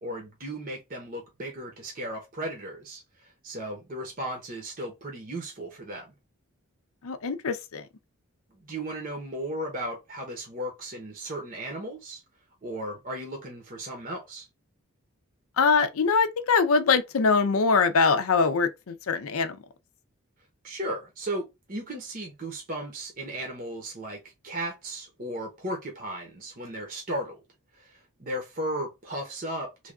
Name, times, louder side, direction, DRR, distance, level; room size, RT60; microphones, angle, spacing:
voice 1, 0.0-6.1 8.6-12.2 12.6-14.5 20.6-27.4 27.7-29.9, right 1 dB, 40° right, 0.8 m, -35 dB
voice 2, 7.0-7.8 15.6-19.6, left 5 dB, 80° left, 0.5 m, -23 dB
3.3 x 2.3 x 3.6 m
head